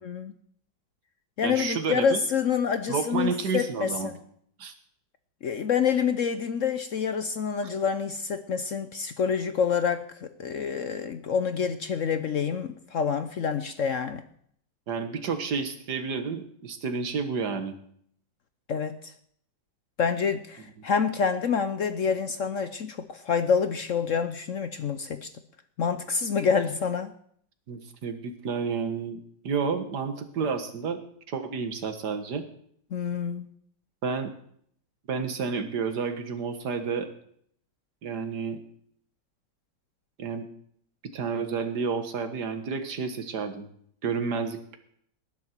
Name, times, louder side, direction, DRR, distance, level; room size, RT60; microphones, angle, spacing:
voice 1, 0.0-0.3 1.4-4.2 5.4-14.2 18.7-19.1 20.0-25.3 25.8-27.1 32.9-33.5, left 6 dB, 60° left, 10 dB, 0.9 m, -27 dB
voice 2, 1.4-2.2 2.9-4.1 4.6-4.7 14.9-17.7 27.7-31.0 31.3-32.4 34.0-34.3 35.1-37.1 38.0-38.6 40.2-40.5 41.1-43.7 44.0-44.8, right 5 dB, 65° right, 8 dB, 2.0 m, -30 dB
19.5 x 10.5 x 4.5 m, 0.63 s
omnidirectional pair, 2.0 m